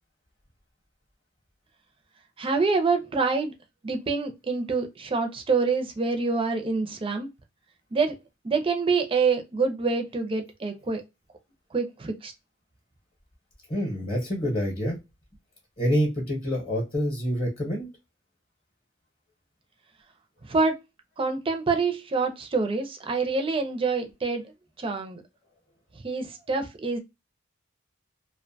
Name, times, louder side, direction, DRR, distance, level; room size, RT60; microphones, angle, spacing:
voice 1, 2.4-3.5 3.8-7.3 7.9-8.1 8.4-11.0 11.7-12.3 20.5-20.7 21.2-24.4 24.8-25.2 26.0-27.0, right 4 dB, 25° right, 0.5 m, -26 dB
voice 2, 13.7-15.0 15.8-17.9, equal, 30° left, 0.8 m, -27 dB
2.5 x 2.2 x 2.6 m
head